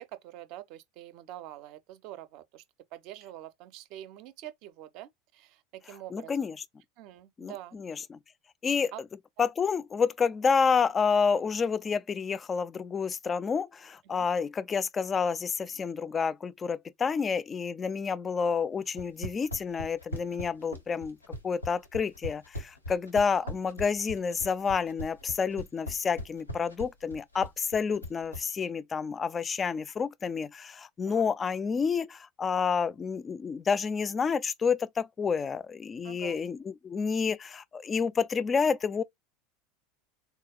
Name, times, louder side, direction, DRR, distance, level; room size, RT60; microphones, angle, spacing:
voice 1, 0.0-2.6 2.9-6.4 7.0-7.8 8.9-9.0 9.4-9.5 14.0-14.3 23.4-23.5 31.1-31.2 36.0-36.4, right 13 dB, 50° right, 0.5 m, -45 dB
voice 2, 6.1-6.5 7.4-8.2 8.6-8.9 9.4-21.2 21.4-36.6 36.8-39.0, left 5 dB, 25° left, 0.3 m, -29 dB
sound 1, 18.9-28.5, left 1 dB, 90° left, 0.8 m, -39 dB
4.0 x 2.2 x 2.2 m
figure-of-eight pair, 75°, 0 cm